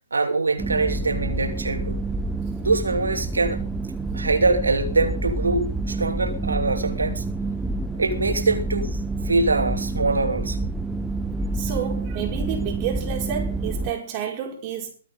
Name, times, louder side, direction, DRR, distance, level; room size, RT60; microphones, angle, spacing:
voice 1, 0.1-2.0 2.6-3.6 4.1-7.2 8.0-9.0 9.2-10.6, right 3 dB, 75° right, 2.8 m, -23 dB
sound 1, 0.6-13.9, right 2 dB, 5° right, 1.0 m, -28 dB
voice 2, 11.5-14.9, right 9 dB, 30° right, 5.1 m, -30 dB
22.5 x 8.9 x 4.1 m
figure-of-eight pair, 125°, 0 cm